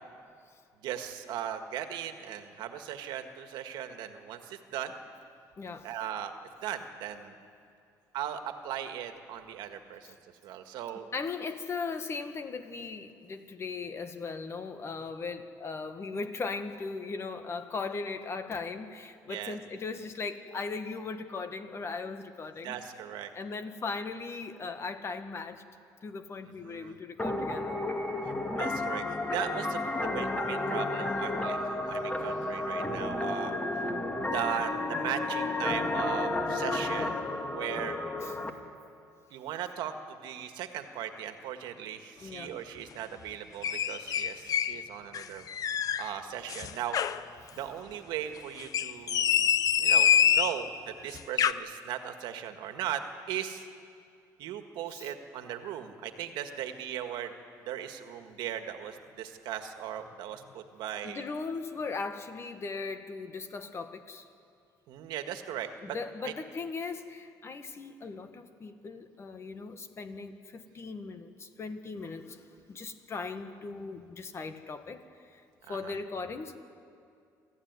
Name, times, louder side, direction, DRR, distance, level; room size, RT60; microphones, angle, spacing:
voice 1, 0.8-5.0 5.8-6.4 6.6-7.3 8.1-10.2 10.4-11.1 19.3-19.6 22.6-23.3 26.6-27.0 28.5-33.6 34.2-37.2 37.5-38.0 39.3-45.4 46.0-47.0 47.5-49.5 49.8-53.0 53.3-53.7 54.4-57.3 57.7-61.2 64.9-66.0 66.2-66.3 75.7-76.0, right 10 dB, 80° right, 7 dB, 1.7 m, -38 dB
voice 2, 5.6-5.9 11.1-22.8 23.3-25.6 26.0-27.8 33.7-34.0 38.2-38.3 42.2-42.5 54.9-55.1 61.0-64.2 65.8-75.4 75.7-76.6, left 4 dB, 35° left, 8 dB, 1.6 m, -38 dB
sound 1, 27.2-38.5, left 2 dB, 15° left, 2.0 m, -32 dB
sound 2, 43.6-44.8 45.1-46.1 46.5-47.2 48.6-50.6 51.1-51.5, left 8 dB, 50° left, 0.8 m, -25 dB
27.0 x 14.0 x 9.6 m, 2.4 s
cardioid pair, 115°, 8 cm